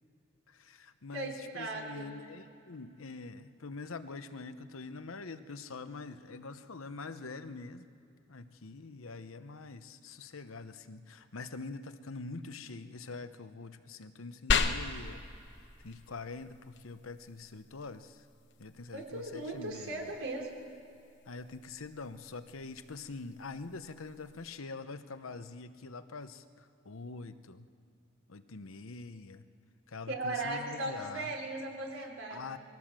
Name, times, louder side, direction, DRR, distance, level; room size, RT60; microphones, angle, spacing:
voice 1, 0.5-7.9 8.3-15.2 15.8-18.2 18.6-20.1 21.3-27.7 28.3-29.4 29.9-31.3 32.3-32.6, left 3 dB, 90° left, 11 dB, 0.9 m, -44 dB
voice 2, 1.1-2.1 18.9-20.5 30.1-32.6, right 2 dB, 80° right, 1 dB, 4.0 m, -38 dB
sound 1, 14.5-24.5, left 4 dB, 60° left, 1.0 m, -39 dB
21.5 x 16.5 x 7.5 m, 2.7 s
head